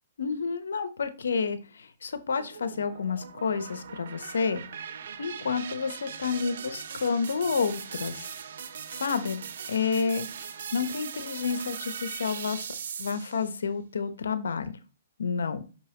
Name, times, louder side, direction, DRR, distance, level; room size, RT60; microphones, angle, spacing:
voice 1, 0.2-4.6 5.2-8.3 9.0-9.4 9.7-10.3 10.7-12.7 13.0-14.7 15.2-15.6, left 5 dB, 85° left, 11 dB, 0.9 m, -29 dB
sound 1, 2.4-13.5, right 7 dB, 65° right, 0.7 m, -40 dB
5.8 x 5.5 x 2.9 m, 0.33 s
hypercardioid pair, 150°, 0 cm